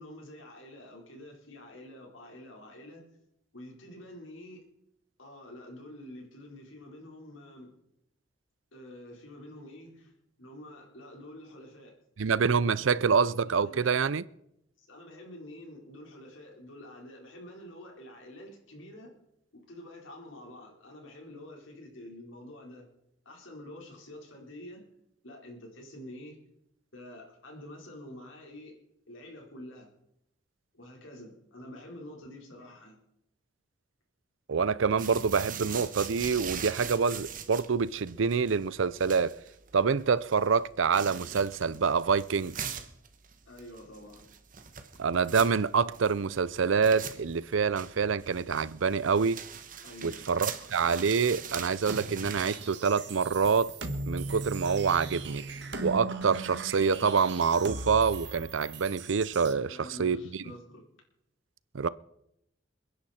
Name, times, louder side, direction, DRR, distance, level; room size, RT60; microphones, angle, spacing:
voice 1, 0.0-3.0 3.5-4.6 5.2-7.7 8.7-10.1 10.4-11.9 12.4-13.0 13.3-13.9 14.8-19.1 19.7-22.9 23.2-24.8 25.2-26.4 26.9-28.8 29.1-29.9 30.7-33.0 43.5-44.3 49.8-50.5 59.7-60.8, left 1 dB, 85° left, 4.3 m, -47 dB
voice 2, 12.2-14.2 34.5-39.4 39.7-42.8 45.0-49.4 50.0-53.7 54.1-55.4 55.8-60.4 61.7-61.9, right 5 dB, 80° right, 0.6 m, -26 dB
sound 1, 35.0-52.6, right 8 dB, 45° right, 1.3 m, -42 dB
sound 2, 51.9-59.5, right 3 dB, 60° right, 1.7 m, -38 dB
28.5 x 10.5 x 4.3 m
head